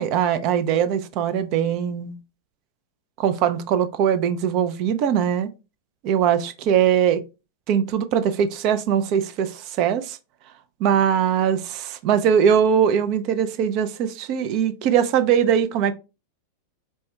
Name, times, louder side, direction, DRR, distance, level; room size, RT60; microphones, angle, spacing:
voice 1, 0.0-2.2 3.2-5.5 6.0-7.2 7.7-10.2 10.8-15.9, right 8 dB, 40° right, 0.4 m, -21 dB
4.3 x 2.2 x 3.1 m
figure-of-eight pair, 90°, 0 cm